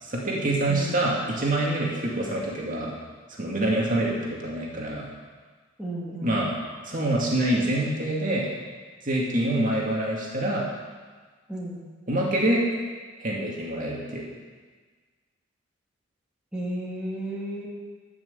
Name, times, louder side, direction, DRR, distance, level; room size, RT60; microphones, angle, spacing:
voice 1, 0.0-2.9 3.4-5.1 6.2-6.5 6.8-8.5 9.0-10.7 12.1-12.6 13.2-14.3, right 1 dB, 45° right, -3 dB, 2.2 m, -26 dB
voice 2, 0.7-1.1 5.8-6.4 11.5-11.8 16.5-17.7, right 1 dB, 5° right, -6 dB, 2.3 m, -33 dB
13.5 x 6.3 x 7.9 m, 1.5 s
head